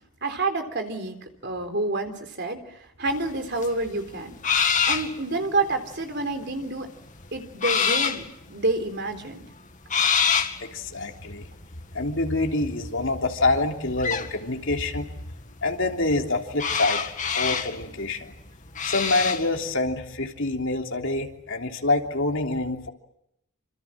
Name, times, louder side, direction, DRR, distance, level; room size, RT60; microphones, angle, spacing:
voice 1, 0.2-4.4 4.9-6.9 7.3-9.5, right 2 dB, 50° right, 6 dB, 3.8 m, -28 dB
sound 1, 3.1-3.2 3.6-5.2 5.6-6.0 6.4-7.1 7.6-8.2 9.1-9.2 9.4-9.5 9.9-10.6 11.0-11.3 14.0-14.3 16.6-17.8 18.8-19.5, left 7 dB, 35° left, 2.1 m, -24 dB
voice 2, 10.6-11.4 11.9-15.1 15.6-18.3 18.8-22.9, left 2 dB, 55° left, 3 dB, 3.4 m, -26 dB
28.5 x 27.0 x 7.6 m, 0.77 s
head